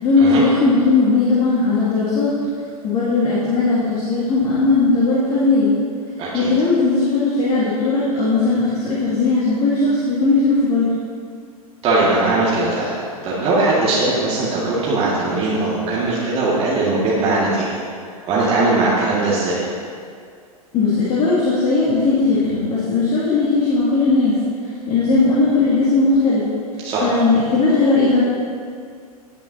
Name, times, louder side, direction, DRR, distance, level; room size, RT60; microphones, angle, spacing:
voice 1, 0.0-2.3 2.8-5.8 6.3-10.9 20.7-24.4 24.9-26.5 27.0-28.2, left 3 dB, 35° left, -9 dB, 2.5 m, -17 dB
voice 2, 6.2-6.5 11.8-17.8 18.2-19.6 26.8-27.1, right 2 dB, 30° right, -8 dB, 2.1 m, -19 dB
18.5 x 7.0 x 2.9 m, 2.2 s
figure-of-eight pair, 95°, 20 cm